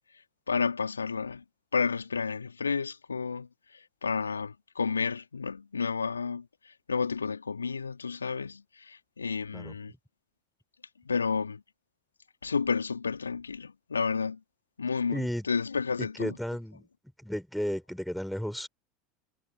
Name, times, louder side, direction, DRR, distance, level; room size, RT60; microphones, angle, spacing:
voice 1, 0.5-1.4 1.7-9.9 11.0-11.6 12.4-14.4 14.8-16.4, left 5 dB, 80° left, 2.6 m, -31 dB
voice 2, 15.1-15.5 16.0-16.9 17.2-18.7, equal, ahead, 3.8 m, -33 dB
figure-of-eight pair, 75°, 0 cm